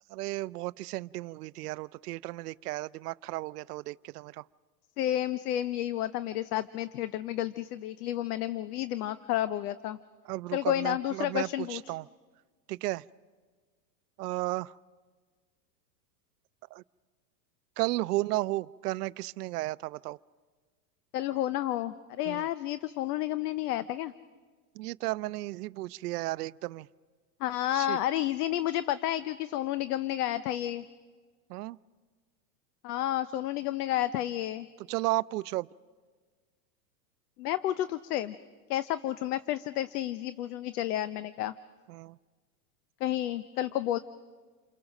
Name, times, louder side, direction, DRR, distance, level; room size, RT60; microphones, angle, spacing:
voice 1, 0.1-4.4 10.3-12.1 12.7-13.0 14.2-14.8 16.7-16.8 17.8-20.2 22.2-22.5 24.8-26.9 27.7-28.0 31.5-31.8 34.9-35.7 41.9-42.2, right 19 dB, 70° right, 18 dB, 0.6 m, -34 dB
voice 2, 5.0-10.0 10.5-11.9 21.1-24.1 27.4-30.8 32.8-34.7 37.4-38.4 38.7-41.5 43.0-44.0, left 13 dB, 70° left, 14 dB, 0.8 m, -31 dB
29.0 x 24.0 x 6.4 m, 1.5 s
supercardioid pair, 140°, 49 cm